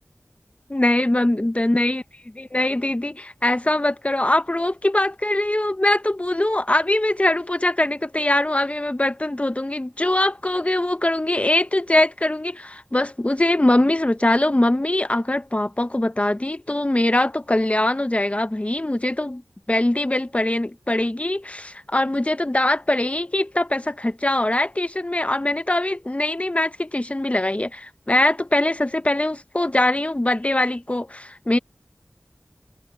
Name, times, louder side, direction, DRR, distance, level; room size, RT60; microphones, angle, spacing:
voice 1, 0.7-2.0 2.4-19.4 19.7-31.6, left 1 dB, 30° left, 0.8 m, -22 dB
wide cardioid pair, 50°, 4 cm